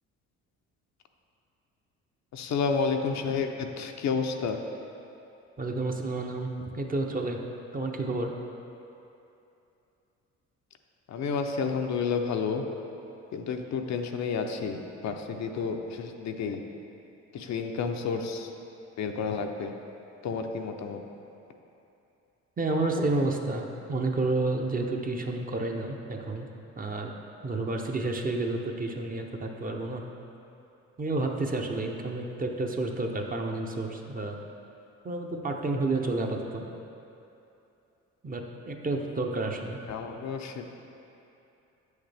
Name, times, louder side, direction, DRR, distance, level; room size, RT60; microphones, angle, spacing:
voice 1, 2.3-4.6 11.1-12.7 13.3-16.6 17.3-18.5 19.0-19.7 20.2-21.0 39.9-40.6, left 5 dB, 65° left, 4 dB, 0.6 m, -30 dB
voice 2, 5.6-7.4 7.7-8.3 22.6-26.5 26.8-27.1 27.4-30.0 31.0-34.4 35.0-36.7 38.2-39.8, right 2 dB, 30° right, 2 dB, 0.7 m, -30 dB
8.0 x 6.4 x 3.4 m, 2.8 s
cardioid pair, 90°, 30 cm